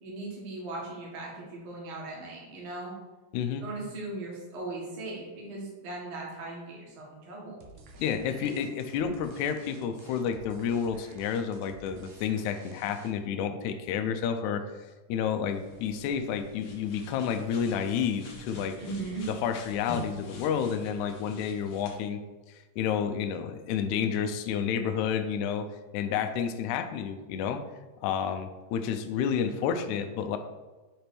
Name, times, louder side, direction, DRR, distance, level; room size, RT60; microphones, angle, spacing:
voice 1, 0.0-2.9 3.6-7.6 8.4-8.5 18.8-19.3, right 2 dB, 45° right, -4 dB, 1.9 m, -38 dB
voice 2, 3.3-3.6 8.0-14.7 15.1-18.8 19.3-22.2 22.8-25.7 25.9-27.6 28.0-30.4, left 7 dB, 85° left, 7 dB, 1.7 m, -30 dB
sound 1, 7.6-13.4, right 3 dB, 80° right, 1.5 m, -52 dB
sound 2, 15.5-21.9, left 1 dB, 65° left, 1.5 m, -46 dB
6.9 x 3.4 x 4.4 m, 1.2 s
omnidirectional pair, 4.0 m